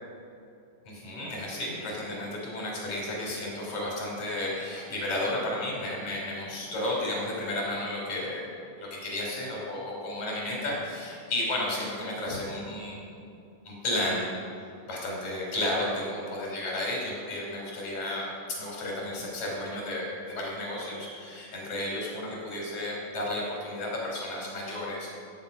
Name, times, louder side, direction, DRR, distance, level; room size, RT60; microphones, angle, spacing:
voice 1, 0.8-8.5 8.8-13.0 13.6-14.3 14.8-25.1, left 1 dB, 55° left, -3 dB, 4.7 m, -33 dB
17.0 x 8.0 x 5.4 m, 2.6 s
omnidirectional pair, 3.9 m